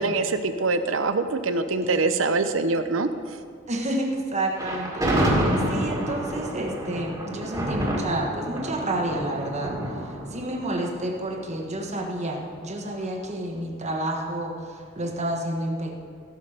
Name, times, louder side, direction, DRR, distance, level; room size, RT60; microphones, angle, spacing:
voice 1, 0.0-3.1, right 3 dB, 75° right, 9 dB, 0.8 m, -24 dB
voice 2, 3.7-9.7 10.3-15.9, right 1 dB, 35° right, 1 dB, 1.3 m, -30 dB
Thunder, 4.6-11.8, right 1 dB, 15° right, 2.0 m, -28 dB
16.5 x 6.5 x 5.0 m, 2.2 s
head